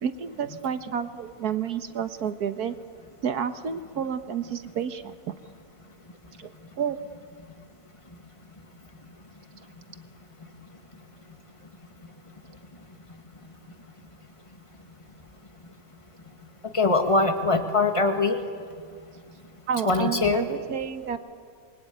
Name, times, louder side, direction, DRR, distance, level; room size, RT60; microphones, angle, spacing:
voice 1, 0.0-2.8 3.2-5.3 6.4-6.5 6.8-7.0 19.7-21.2, right 7 dB, 85° right, 10 dB, 1.8 m, -30 dB
voice 2, 16.7-18.4 19.9-20.5, left 3 dB, 20° left, 6 dB, 2.0 m, -22 dB
27.0 x 23.5 x 9.3 m, 2.1 s
omnidirectional pair, 1.6 m